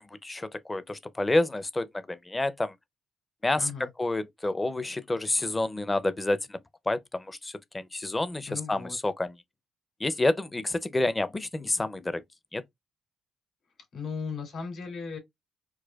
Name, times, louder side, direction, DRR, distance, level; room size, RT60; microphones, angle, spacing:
voice 1, 0.0-2.7 3.4-3.7 4.0-6.6 6.9-9.3 10.0-12.2 12.5-12.6, left 2 dB, 20° left, 0.5 m, -29 dB
voice 2, 3.6-3.9 8.5-9.0 13.9-15.2, left 5 dB, 60° left, 2.5 m, -36 dB
4.6 x 2.2 x 2.2 m
cardioid pair, 90°, 0 cm